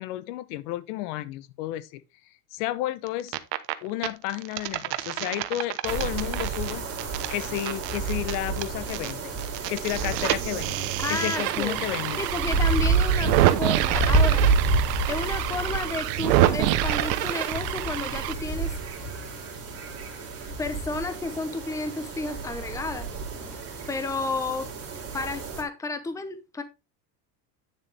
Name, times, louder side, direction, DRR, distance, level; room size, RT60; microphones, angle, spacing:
voice 1, 0.0-2.0 2.5-3.4 3.8-6.9 7.3-9.3 9.7-12.2, left 15 dB, 70° left, 1.0 m, -32 dB
sound 1, 3.1-3.7 4.0-9.1 9.4-18.3, right 14 dB, 90° right, 1.1 m, -27 dB
sound 2, 5.9-25.6, right 4 dB, 30° right, 3.7 m, -29 dB
voice 2, 11.0-11.8 12.2-14.4 15.1-18.7 20.6-23.1 23.9-24.7 25.1-26.6, left 3 dB, 5° left, 0.8 m, -31 dB
9.7 x 6.8 x 3.5 m
supercardioid pair, 150°, 48 cm